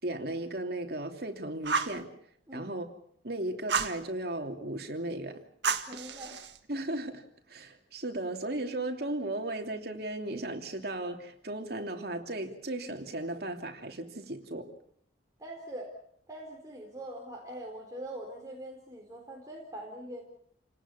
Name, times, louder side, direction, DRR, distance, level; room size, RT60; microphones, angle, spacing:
voice 1, 0.0-2.1 2.5-2.9 3.2-5.4 6.7-14.7, right 1 dB, 60° right, 3.0 m, -36 dB
Fire, 1.6-2.0 3.7-4.0 5.6-6.6, right 5 dB, 75° right, 1.9 m, -31 dB
voice 2, 5.9-6.4 15.4-15.9 16.3-20.2, right 1 dB, 20° right, 4.2 m, -42 dB
29.5 x 19.0 x 7.1 m
head